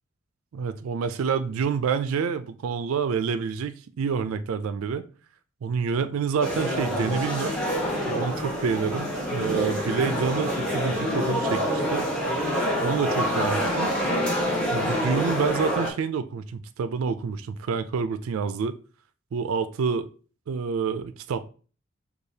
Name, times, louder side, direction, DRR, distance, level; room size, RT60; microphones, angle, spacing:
voice 1, 0.5-5.0 5.6-7.5 8.1-12.1 12.8-13.9 14.7-18.8 19.3-20.1 20.5-21.4, right 5 dB, 90° right, 11 dB, 0.4 m, -28 dB
sound 1, 6.4-15.9, equal, 5° left, 1.2 m, -26 dB
6.5 x 2.3 x 2.7 m, 0.38 s
head